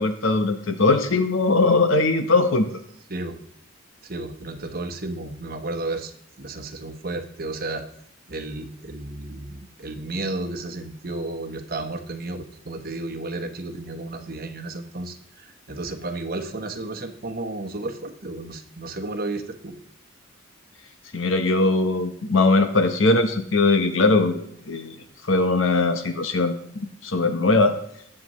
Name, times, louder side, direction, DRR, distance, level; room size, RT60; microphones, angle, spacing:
voice 1, 0.0-2.7 21.1-25.0 25.3-26.6 27.0-27.7, left 3 dB, 70° left, 7 dB, 1.0 m, -20 dB
voice 2, 4.0-6.1 6.4-7.8 8.3-19.7, right 2 dB, 45° right, 5 dB, 1.1 m, -32 dB
20.0 x 7.6 x 3.1 m, 0.72 s
head